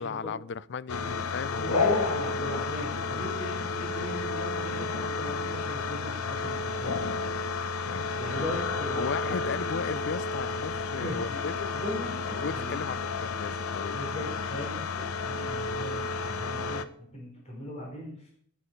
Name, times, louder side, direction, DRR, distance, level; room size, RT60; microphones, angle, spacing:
voice 1, 0.0-2.0 7.9-8.1 9.0-11.7 12.4-14.0, left 5 dB, 50° left, 20 dB, 0.4 m, -35 dB
sound 1, 0.9-16.8, left 4 dB, 75° left, 0.9 m, -31 dB
voice 2, 1.5-7.0 8.2-10.0 10.9-12.8 13.9-18.3, left 1 dB, 30° left, -1 dB, 4.2 m, -38 dB
13.0 x 9.4 x 5.2 m, 0.64 s
head